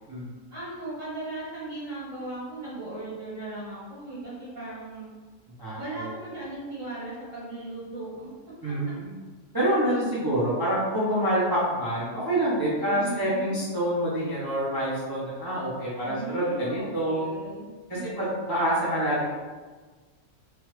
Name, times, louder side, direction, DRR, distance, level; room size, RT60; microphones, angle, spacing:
voice 1, 0.5-5.1 5.7-8.3 12.8-13.6 16.0-18.6, right 2 dB, 65° right, -10 dB, 1.7 m, -38 dB
voice 2, 5.6-6.1 8.6-9.1 9.5-17.3 18.2-19.2, right 1 dB, 30° right, -9 dB, 0.4 m, -27 dB
3.1 x 2.4 x 3.1 m, 1.4 s
omnidirectional pair, 1.5 m